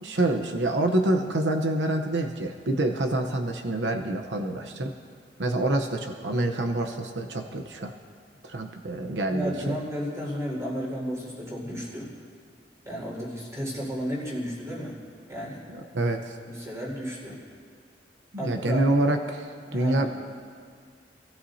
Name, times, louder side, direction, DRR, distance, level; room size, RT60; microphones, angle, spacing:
voice 1, 0.0-4.9 5.4-7.9 8.4-9.7 15.7-16.3 18.4-20.1, right 1 dB, 80° right, 4 dB, 0.9 m, -27 dB
voice 2, 9.3-12.1 12.8-15.0 15.3-15.6 16.4-17.4 18.4-18.8 19.6-20.1, equal, 20° right, -4 dB, 4.8 m, -33 dB
26.0 x 14.5 x 2.8 m, 2.1 s
head